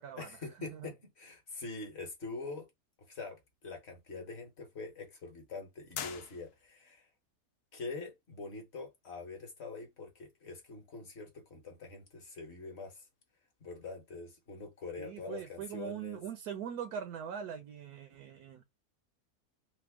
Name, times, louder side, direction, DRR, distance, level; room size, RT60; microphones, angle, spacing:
voice 1, 0.1-2.7 3.1-7.1 7.7-13.0 13.6-16.2, left 3 dB, 45° left, 1.2 m, -44 dB
sound 1, 5.9-6.9, left 9 dB, 90° left, 1.1 m, -43 dB
voice 2, 15.0-18.6, right 8 dB, 80° right, 1.1 m, -41 dB
3.4 x 2.1 x 3.4 m
omnidirectional pair, 1.6 m